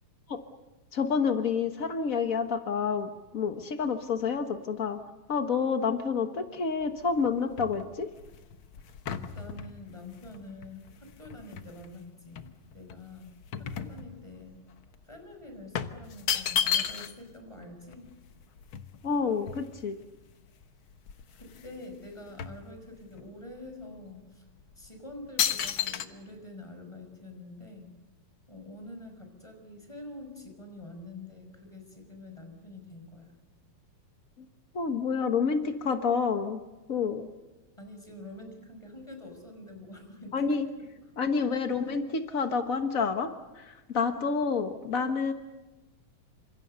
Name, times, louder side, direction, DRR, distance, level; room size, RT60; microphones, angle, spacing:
voice 1, 0.9-5.0 5.3-8.1 19.0-20.0 34.7-36.6 36.9-37.3 40.3-40.7 41.2-43.3 43.5-45.3, left 5 dB, 70° left, 7 dB, 0.7 m, -28 dB
sound 1, 6.8-11.9 12.4-14.5 14.8-15.0 15.7-17.3 17.6-17.7 17.9-20.1 20.6-20.7 21.0-21.8 22.0-23.3 23.8-24.0 24.6-24.9 25.4-26.1, left 8 dB, 55° left, 1.5 m, -33 dB
voice 2, 9.3-12.5 12.7-14.6 15.0-18.1 21.4-24.4 24.8-27.9 28.5-33.4 37.8-40.6 41.0-41.1, left 2 dB, 10° left, 5 dB, 5.6 m, -46 dB
28.5 x 26.5 x 6.8 m, 1.1 s
omnidirectional pair, 3.6 m